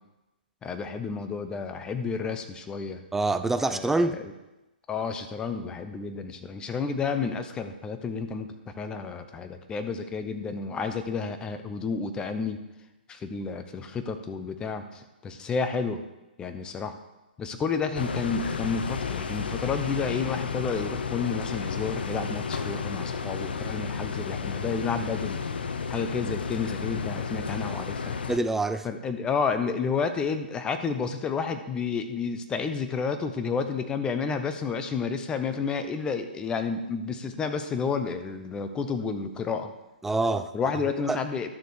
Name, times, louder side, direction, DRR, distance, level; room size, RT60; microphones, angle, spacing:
voice 1, 0.6-3.0 3.7-4.3 4.9-12.6 13.1-16.0 16.4-16.9 17.4-25.4 25.9-28.2 28.8-39.7 40.5-41.5, left 5 dB, 15° left, 8 dB, 0.8 m, -31 dB
voice 2, 3.1-4.2 28.3-28.9 40.0-40.5 41.1-41.2, right 2 dB, 5° right, 10 dB, 0.4 m, -25 dB
sound 1, 17.9-28.4, left 5 dB, 75° left, 0.7 m, -32 dB
11.5 x 6.9 x 4.7 m, 1.0 s
hypercardioid pair, 130°, 6 cm